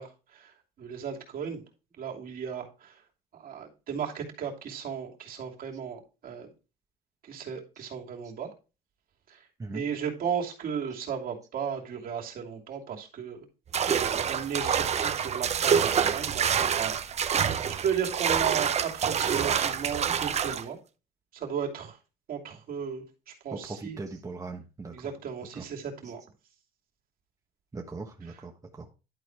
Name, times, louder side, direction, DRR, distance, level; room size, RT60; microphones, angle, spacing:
voice 1, 0.0-1.6 2.0-3.0 3.3-6.5 7.2-8.5 9.3-9.4 9.7-13.5 14.3-20.8 21.3-22.0 22.3-24.0 24.9-26.2, right 7 dB, 60° right, 2.9 m, -35 dB
sound 1, 13.7-20.6, right 7 dB, 40° right, 0.8 m, -27 dB
voice 2, 23.5-25.1 25.6-25.7 27.7-28.9, right 3 dB, 20° right, 1.2 m, -39 dB
11.5 x 4.3 x 4.6 m
cardioid pair, 110°, 17 cm